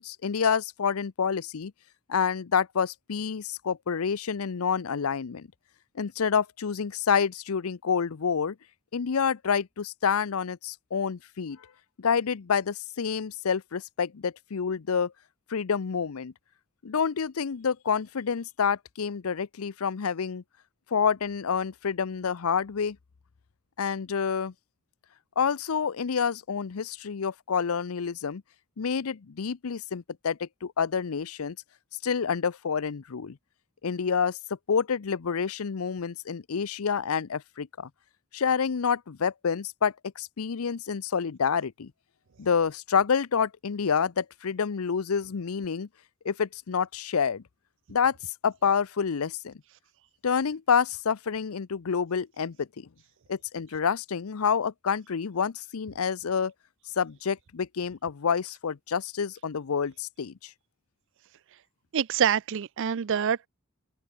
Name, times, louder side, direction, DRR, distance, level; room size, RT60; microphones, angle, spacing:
voice 1, 0.0-1.7 2.1-5.5 6.0-8.6 8.9-11.6 12.0-15.1 15.5-16.3 16.8-20.4 20.9-23.0 23.8-24.5 25.4-28.4 28.8-31.6 32.0-33.4 33.8-34.4 34.7-37.9 38.3-41.9 42.4-45.9 46.2-47.4 47.9-48.2 48.4-49.6 50.2-52.9 53.3-56.5 57.0-60.5, left 6 dB, 90° left, 0.6 m, -28 dB
voice 2, 61.9-63.5, right 8 dB, 60° right, 0.5 m, -26 dB
open air
head